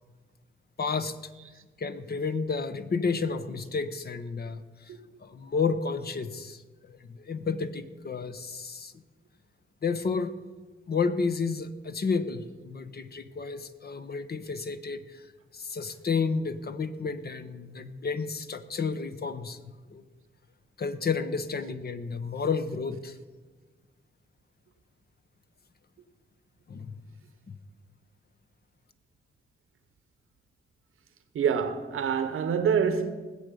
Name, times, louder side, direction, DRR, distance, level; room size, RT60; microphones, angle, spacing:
voice 1, 0.8-1.2 1.8-4.9 5.2-9.0 9.8-10.4 10.9-15.3 15.5-19.6 19.9-20.0 20.8-23.2 26.7-27.0 27.5-27.6, left 5 dB, 50° left, 1.0 m, -31 dB
voice 2, 31.3-33.1, right 7 dB, 80° right, 1.1 m, -26 dB
20.0 x 7.8 x 5.3 m
cardioid pair, 60°, 21 cm